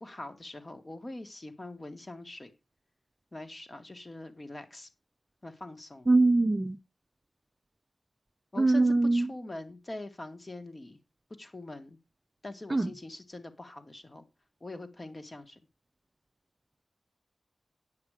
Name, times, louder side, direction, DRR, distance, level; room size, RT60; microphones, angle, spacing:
voice 1, 0.0-2.5 3.3-4.9 5.4-6.1 8.5-11.0 11.4-12.0 12.4-14.3 14.6-15.6, left 2 dB, 35° left, 1.9 m, -43 dB
voice 2, 6.1-6.8 8.6-9.3 12.7-12.9, right 2 dB, 30° right, 0.5 m, -23 dB
9.6 x 7.9 x 5.0 m
wide cardioid pair, 85°, 0 cm